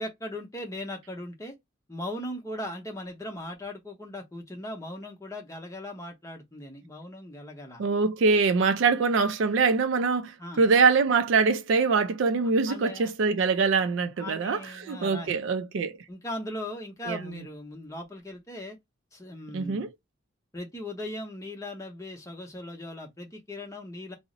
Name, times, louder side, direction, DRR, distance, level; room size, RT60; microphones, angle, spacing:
voice 1, 0.0-1.6 1.9-7.8 10.4-10.6 12.7-13.1 14.2-15.3 16.1-18.8 19.1-19.9 20.5-24.2, left 1 dB, 15° left, 0.7 m, -38 dB
voice 2, 7.8-16.0 17.1-17.2 19.5-19.9, right 4 dB, 65° right, 0.4 m, -24 dB
2.4 x 2.0 x 3.7 m
head